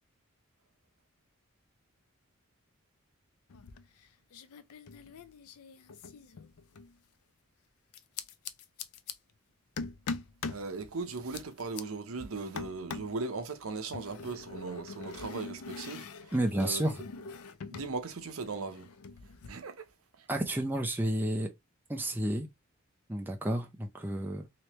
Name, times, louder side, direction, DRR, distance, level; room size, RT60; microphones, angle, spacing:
sound 1, 3.5-4.0 4.3-6.9 7.9-9.1 9.8-10.7 11.1-11.8 12.6-13.2 13.9-17.9 18.2-19.5, left 4 dB, 75° left, 0.4 m, -42 dB
voice 1, 10.5-16.9 17.7-18.9 19.5-19.9 20.2-20.3, right 3 dB, 70° right, 0.7 m, -38 dB
voice 2, 16.3-16.9 20.3-21.5 21.9-22.5 23.1-24.4, right 1 dB, 10° right, 0.4 m, -31 dB
3.1 x 3.1 x 2.9 m
head